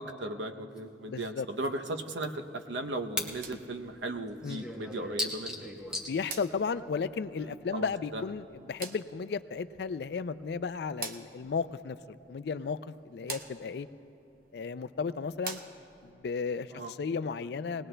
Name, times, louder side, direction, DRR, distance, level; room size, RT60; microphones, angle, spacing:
voice 1, 0.0-5.6 7.4-8.2 16.7-16.9, right 1 dB, 85° right, 6 dB, 0.7 m, -37 dB
sound 1, 0.8-0.9 1.2-1.3 1.6-1.7 2.0-3.3 3.6-3.7 4.1-6.1, left 1 dB, 5° right, 0.9 m, -37 dB
voice 2, 1.1-1.5 4.4-4.6 6.1-13.9 14.5-15.6 16.0-17.9, left 5 dB, 65° left, 13 dB, 0.4 m, -34 dB
sound 2, 3.1-16.1, right 5 dB, 50° right, 0.7 m, -48 dB
21.0 x 19.0 x 2.2 m, 2.8 s
head